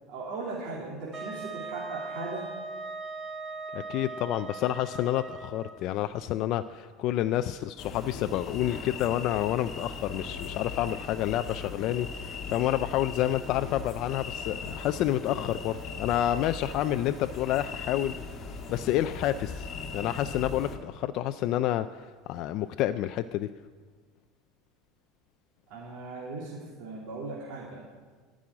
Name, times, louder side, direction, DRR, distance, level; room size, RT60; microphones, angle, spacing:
voice 1, 0.1-2.5 25.7-27.8, right 3 dB, 60° right, -4 dB, 3.0 m, -38 dB
Wind instrument woodwind instrument, 1.1-5.8, right 3 dB, 10° right, 1.6 m, -39 dB
voice 2, 3.7-19.7 19.9-23.5, left 13 dB, 45° left, 10 dB, 0.4 m, -29 dB
sound 1, 7.8-20.8, left 5 dB, 25° left, 1.7 m, -39 dB
15.5 x 6.2 x 9.9 m, 1.5 s
cardioid pair, 160°, 0 cm